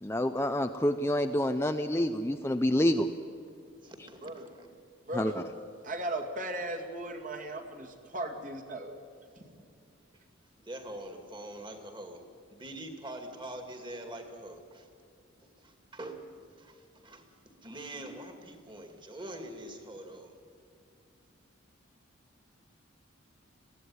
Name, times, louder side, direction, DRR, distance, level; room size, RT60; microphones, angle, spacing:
voice 1, 0.0-3.1 5.2-5.3, left 1 dB, 10° left, 7 dB, 0.5 m, -27 dB
voice 2, 3.8-4.7 9.4-9.5 10.6-12.2 12.5-14.9 15.4-16.3 16.6-17.3 17.6-20.4, right 1 dB, 25° right, 5 dB, 2.3 m, -44 dB
voice 3, 5.1-5.4 5.8-9.0, right 1 dB, 40° right, 4 dB, 2.2 m, -37 dB
22.5 x 16.0 x 9.7 m, 2.4 s
head